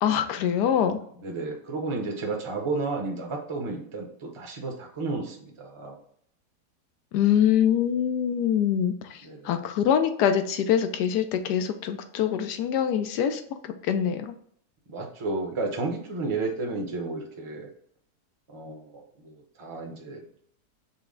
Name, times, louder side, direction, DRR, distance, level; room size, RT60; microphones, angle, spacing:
voice 1, 0.0-1.0 7.1-9.2 9.4-13.4 13.9-14.3, left 9 dB, 90° left, 7 dB, 1.2 m, -24 dB
voice 2, 1.1-6.0 9.2-9.6 14.9-17.7 18.5-20.4, right 3 dB, 30° right, 1 dB, 0.6 m, -32 dB
5.6 x 2.1 x 3.7 m, 0.65 s
omnidirectional pair, 1.7 m